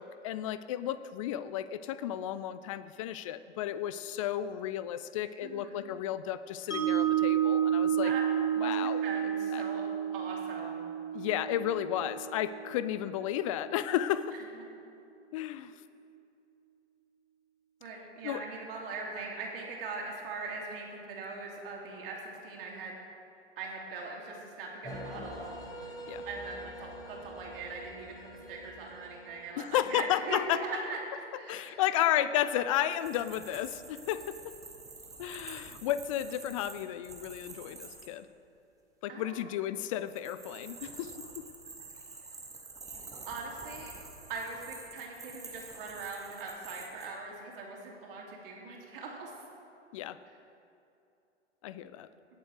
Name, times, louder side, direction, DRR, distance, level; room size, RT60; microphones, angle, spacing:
voice 1, 0.0-9.0 9.5-9.6 11.1-14.4 15.3-15.7 18.2-18.4 26.1-26.2 29.6-30.8 31.5-34.4 35.2-38.3 39.0-41.5 49.9-50.2 51.6-52.1, left 11 dB, 30° left, 14 dB, 0.4 m, -33 dB
voice 2, 5.4-5.9 8.0-8.2 8.5-9.8 10.1-10.9 17.8-22.9 23.6-25.5 26.2-31.0 31.3-31.8 39.1-39.5 43.3-43.9 44.3-49.3 50.3-50.4, right 4 dB, 50° right, -2 dB, 3.0 m, -41 dB
Mallet percussion, 6.7-12.9, right 10 dB, 80° left, 2.1 m, -30 dB
sound 1, 24.8-30.8, equal, 10° left, 1.7 m, -46 dB
sound 2, 32.8-38.1 39.9-47.1, right 4 dB, 10° right, 1.3 m, -48 dB
17.5 x 7.4 x 4.9 m, 2.7 s
figure-of-eight pair, 105°, 35 cm